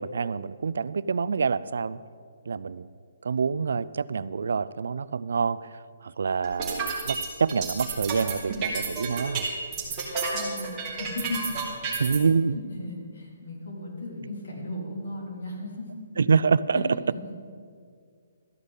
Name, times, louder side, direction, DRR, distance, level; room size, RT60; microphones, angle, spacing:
voice 1, 0.0-2.0 2.5-2.9 3.2-5.6 6.0-9.5 12.0-12.6 16.2-16.8, right 5 dB, 70° right, 17 dB, 0.3 m, -26 dB
sound 1, 6.4-12.2, right 5 dB, 15° right, 1.9 m, -31 dB
voice 2, 10.3-10.7 11.0-11.6 11.8-12.0 12.5-15.9 16.7-17.4, left 2 dB, 70° left, -3 dB, 3.6 m, -36 dB
13.0 x 5.2 x 8.2 m, 2.1 s
hypercardioid pair, 175°, 0 cm